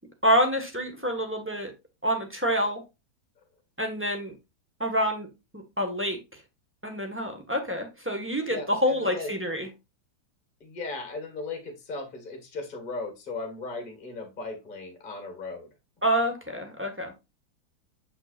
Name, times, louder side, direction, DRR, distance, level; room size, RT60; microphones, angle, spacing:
voice 1, 0.2-1.7 2.0-2.8 3.8-4.3 4.8-5.3 5.5-6.4 6.8-9.7 16.0-17.1, equal, 5° right, 4 dB, 1.3 m, -27 dB
voice 2, 8.4-9.3 10.6-15.7, left 3 dB, 25° left, 5 dB, 1.8 m, -37 dB
7.7 x 5.9 x 2.5 m, 0.24 s
omnidirectional pair, 2.2 m